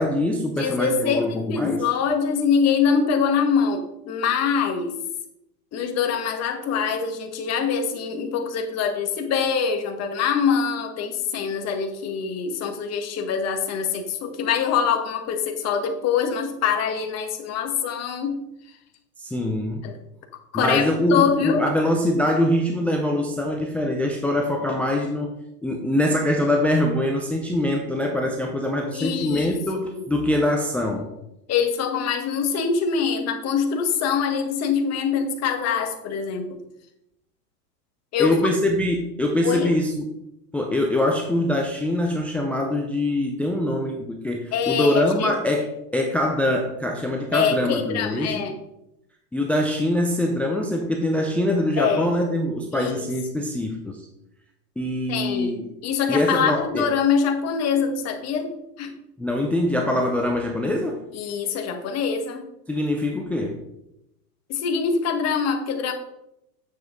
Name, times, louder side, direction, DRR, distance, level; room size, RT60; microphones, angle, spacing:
voice 1, 0.0-1.8 19.2-19.8 20.5-25.3 25.6-31.1 38.2-40.0 40.5-48.4 49.3-54.0 54.8-55.7 56.1-56.8 59.2-61.0 62.7-63.6, left 1 dB, 5° left, 2 dB, 0.5 m, -23 dB
voice 2, 0.6-5.0 5.7-18.4 19.8-19.9 20.5-21.6 28.9-30.1 31.5-36.6 38.1-38.4 39.4-39.7 44.5-45.3 47.3-48.6 51.8-52.1 52.7-53.1 53.3-53.5 55.1-58.5 58.8-58.9 61.1-62.5 64.5-65.9, left 6 dB, 30° left, 4 dB, 1.6 m, -24 dB
9.3 x 7.3 x 3.8 m, 0.84 s
hypercardioid pair, 125°, 48 cm